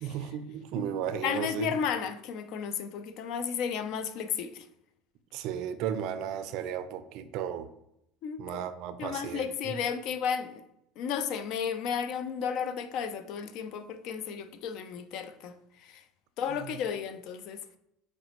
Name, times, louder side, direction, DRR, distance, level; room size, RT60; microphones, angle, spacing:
voice 1, 0.0-1.8 5.3-7.7 8.4-9.7 16.7-16.8, right 9 dB, 60° right, 0.3 m, -34 dB
voice 2, 1.2-4.6 8.2-8.6 9.0-10.6 11.0-15.5 15.8-16.0 16.4-17.6, left 7 dB, 60° left, 0.3 m, -33 dB
4.9 x 2.1 x 2.9 m
supercardioid pair, 95°, 0 cm